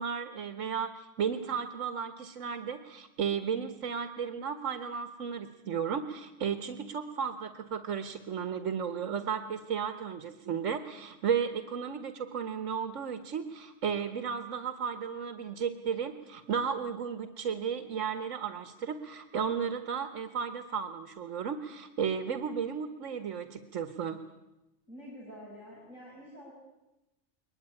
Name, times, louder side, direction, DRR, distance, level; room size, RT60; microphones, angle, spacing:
voice 1, 0.0-24.2, right 7 dB, 85° right, 9 dB, 1.6 m, -34 dB
voice 2, 24.9-26.5, equal, 85° left, -5 dB, 6.2 m, -47 dB
22.0 x 20.5 x 9.9 m, 0.98 s
omnidirectional pair, 1.3 m